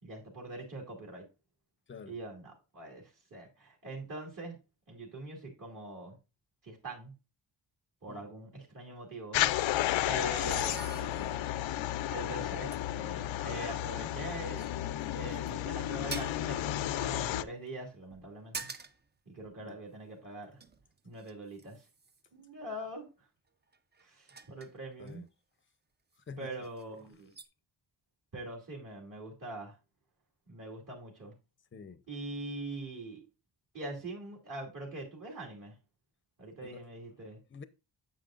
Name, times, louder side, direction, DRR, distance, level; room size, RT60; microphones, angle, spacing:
voice 1, 0.0-1.2 2.1-4.6 4.9-6.2 6.6-7.1 8.0-9.5 10.1-11.4 12.1-14.6 15.1-18.7 19.3-20.6 21.0-21.8 22.3-23.1 24.0-25.2 26.4-27.3 28.3-29.8 30.5-31.3 32.1-33.2 33.7-35.8 36.4-37.4, right 2 dB, 45° right, 2.5 m, -43 dB
sound 1, 9.3-17.4, left 13 dB, 85° left, 0.5 m, -32 dB
sound 2, 10.3-11.5 12.0-12.1 12.7-12.8 14.0-14.2 14.6-15.5 16.1-16.5 18.1-19.1 19.4-19.5 20.3-22.3 23.7-25.1 26.1-26.2 26.5-26.8 27.3-27.5, right 4 dB, 25° right, 0.5 m, -46 dB
voice 2, 31.7-32.0 36.6-36.8 37.5-37.6, left 5 dB, 25° left, 0.6 m, -47 dB
8.9 x 7.4 x 2.4 m
wide cardioid pair, 145°, 45 cm